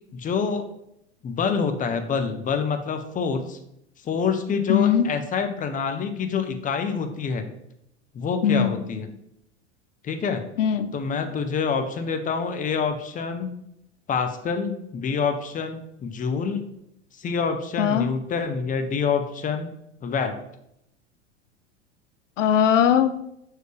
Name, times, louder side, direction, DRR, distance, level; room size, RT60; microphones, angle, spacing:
voice 1, 0.1-0.6 1.2-3.6 4.0-7.5 8.1-9.1 10.0-10.4 10.9-13.6 14.1-16.7 17.1-19.7 20.0-20.3, left 5 dB, 20° left, 8 dB, 0.7 m, -26 dB
voice 2, 4.7-5.1 8.4-8.7 10.6-10.9 17.8-18.1 22.4-23.2, left 8 dB, 85° left, 11 dB, 0.5 m, -20 dB
6.2 x 4.6 x 3.4 m, 0.78 s
hypercardioid pair, 90°, 36 cm